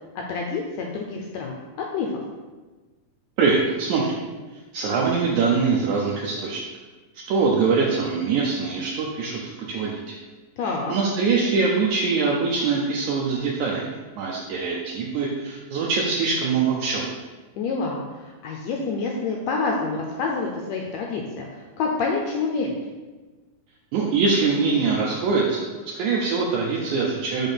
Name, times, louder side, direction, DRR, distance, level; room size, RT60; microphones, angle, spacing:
voice 1, 0.1-2.2 10.6-10.9 17.6-22.8, left 4 dB, 80° left, 0 dB, 1.5 m, -28 dB
voice 2, 3.4-4.2 4.7-6.6 7.3-10.2 10.6-13.9 14.2-17.1 23.9-25.7 25.9-27.5, right 4 dB, 75° right, -3 dB, 2.0 m, -23 dB
5.9 x 3.6 x 5.6 m, 1.3 s
omnidirectional pair, 3.7 m